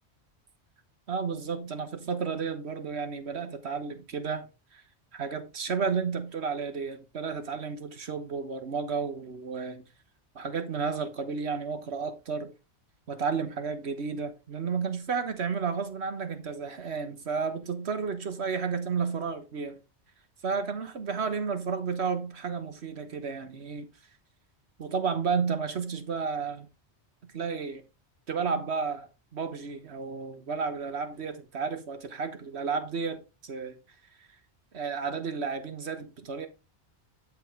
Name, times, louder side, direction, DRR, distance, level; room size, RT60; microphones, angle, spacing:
voice 1, 1.1-4.5 4.7-4.8 5.1-9.8 10.3-12.5 13.1-19.8 20.4-23.9 24.8-26.7 27.2-27.8 28.3-33.8 34.7-36.5, right 5 dB, 65° right, 1.5 m, -32 dB
11.0 x 5.0 x 3.7 m
omnidirectional pair, 1.2 m